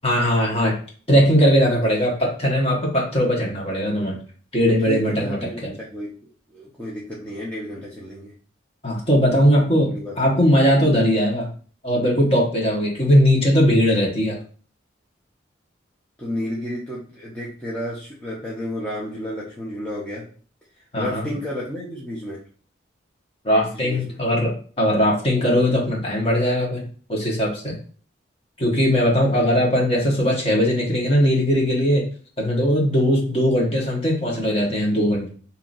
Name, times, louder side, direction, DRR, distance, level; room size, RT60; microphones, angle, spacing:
voice 1, 0.0-0.7 1.1-4.2 4.5-5.7 8.8-11.5 11.8-14.4 20.9-21.3 23.4-26.8 27.1-27.7 28.6-32.0 32.4-35.3, equal, 30° left, -2 dB, 1.2 m, -19 dB
voice 2, 4.9-8.3 9.6-10.5 16.2-20.3 21.0-22.4 23.7-24.2, left 1 dB, 10° left, -7 dB, 0.7 m, -32 dB
5.6 x 2.8 x 2.6 m, 0.42 s
head